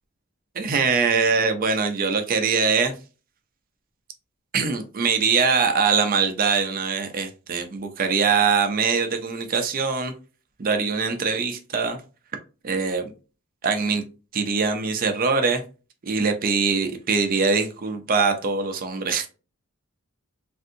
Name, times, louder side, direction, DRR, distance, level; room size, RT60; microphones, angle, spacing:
voice 1, 0.5-2.9 4.5-10.1 10.6-12.0 12.6-13.1 13.6-14.0 14.3-15.6 16.0-19.3, right 5 dB, 40° right, 7 dB, 0.4 m, -22 dB
3.4 x 2.5 x 2.6 m, 0.34 s
head